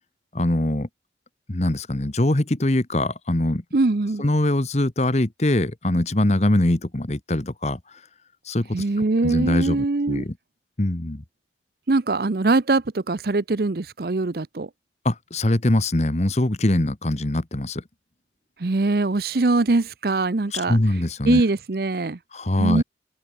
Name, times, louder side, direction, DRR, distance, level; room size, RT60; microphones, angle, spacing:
voice 1, 0.3-0.9 1.5-3.6 4.2-7.8 8.5-8.8 9.2-10.3 10.8-11.2 15.0-17.8 20.5-21.4 22.3-22.8, left 1 dB, 40° left, 1.2 m, -22 dB
voice 2, 3.7-4.3 8.7-10.2 11.9-14.7 18.6-20.8 21.2-22.2 22.6-22.8, right 3 dB, 55° right, 0.7 m, -22 dB
head